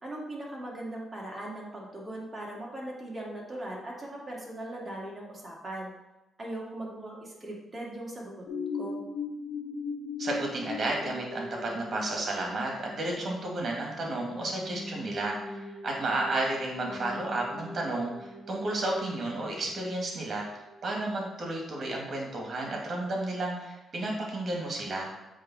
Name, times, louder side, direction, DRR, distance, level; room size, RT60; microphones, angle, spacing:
voice 1, 0.0-5.9 6.4-8.5 8.7-9.0, right 1 dB, 30° right, -3 dB, 2.4 m, -39 dB
sound 1, 8.5-22.0 22.5-22.6, left 3 dB, 75° left, 1.6 m, -41 dB
voice 2, 10.2-25.1, right 2 dB, 50° right, -1 dB, 2.3 m, -32 dB
7.6 x 3.4 x 5.6 m, 1.0 s
cardioid pair, 75°, 0 cm